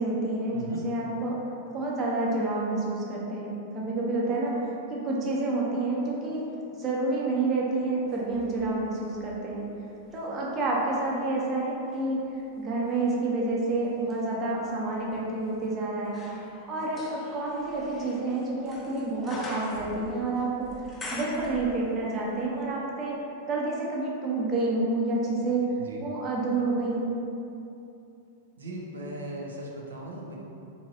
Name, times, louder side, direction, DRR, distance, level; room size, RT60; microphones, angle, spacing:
voice 1, 0.0-1.4 1.7-4.6 4.9-6.5 6.8-9.7 10.1-12.2 12.6-16.2 16.7-20.7 21.1-23.2 23.5-25.6 26.0-27.1, right 2 dB, 30° right, -4 dB, 0.6 m, -29 dB
voice 2, 0.5-0.8 25.8-26.0 28.6-30.4, right 1 dB, 85° right, -2 dB, 0.5 m, -38 dB
sound 1, 8.1-10.3 10.8-22.2 22.4-22.5, left 1 dB, 20° left, 0.5 m, -45 dB
2.9 x 2.6 x 2.7 m, 2.7 s
hypercardioid pair, 110°, 0 cm